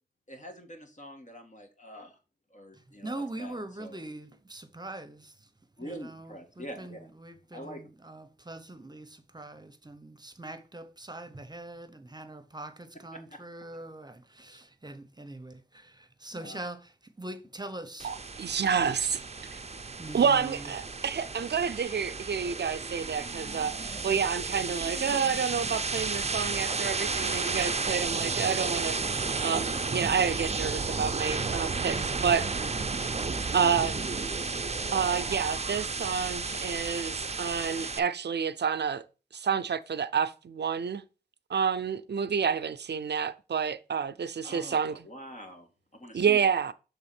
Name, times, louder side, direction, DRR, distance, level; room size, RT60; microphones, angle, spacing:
voice 1, 0.3-2.2 2.5-4.0 5.8-7.1 7.5-7.9 13.1-13.2 14.5-14.6 16.3-16.6 44.4-46.5, equal, 45° left, 1.9 m, -45 dB
voice 2, 2.7-5.5 5.8-18.1 18.7-19.2 20.0-20.7, right 2 dB, 25° right, 0.9 m, -43 dB
sound 1, 18.0-38.0, right 4 dB, 40° right, 0.5 m, -32 dB
voice 3, 18.0-19.1 20.1-32.4 33.5-34.0 34.9-39.0 39.3-41.0 41.5-44.9 46.1-46.7, right 6 dB, 90° right, 0.5 m, -29 dB
7.0 x 3.5 x 5.9 m
wide cardioid pair, 55°, 17 cm